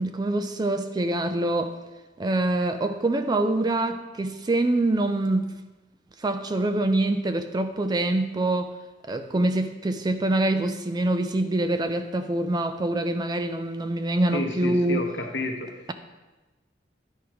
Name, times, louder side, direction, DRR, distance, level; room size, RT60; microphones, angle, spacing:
voice 1, 0.0-1.8 2.2-5.5 6.2-8.7 9.1-15.0, right 2 dB, 20° right, 0.4 m, -25 dB
voice 2, 14.3-15.9, left 2 dB, 70° left, 1.2 m, -31 dB
10.0 x 4.6 x 4.9 m
head